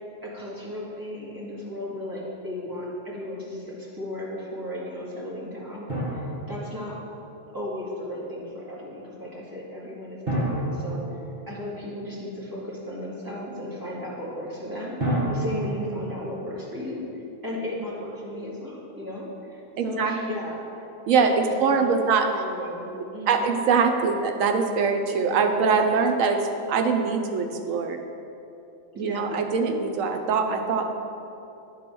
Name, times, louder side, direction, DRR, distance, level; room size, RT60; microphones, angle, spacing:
voice 1, 0.2-7.0 7.5-20.9 21.2-23.5 28.9-29.4, left 1 dB, 15° right, -7 dB, 1.8 m, -35 dB
Drum, 5.9-7.4 10.3-12.1 15.0-16.6, right 1 dB, 45° right, 2.3 m, -30 dB
voice 2, 19.8-20.1 21.1-22.3 23.3-26.4 26.7-28.0 28.9-30.9, right 5 dB, 90° right, 5 dB, 1.1 m, -23 dB
9.9 x 3.8 x 6.1 m, 2.9 s
omnidirectional pair, 1.3 m